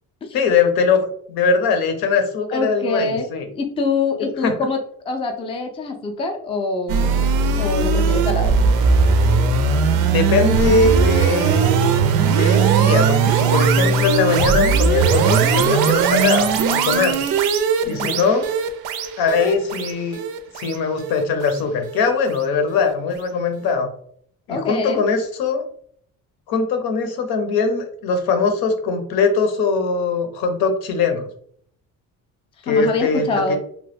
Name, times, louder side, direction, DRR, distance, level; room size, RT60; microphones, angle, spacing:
voice 1, 0.3-3.4 4.4-4.5 10.1-11.8 12.3-17.3 17.9-18.5 19.2-20.2 20.6-23.9 24.5-25.6 26.5-31.2 32.7-33.6, left 4 dB, 90° left, 6 dB, 0.7 m, -21 dB
voice 2, 2.5-3.3 3.5-4.8 5.1-7.3 7.6-8.6 17.9-18.2 24.5-25.0 32.6-33.6, left 3 dB, 15° left, 4 dB, 0.3 m, -25 dB
sound 1, 6.9-22.1, right 5 dB, 85° right, 0.5 m, -18 dB
3.0 x 2.2 x 3.3 m, 0.62 s
cardioid pair, 145°, 36 cm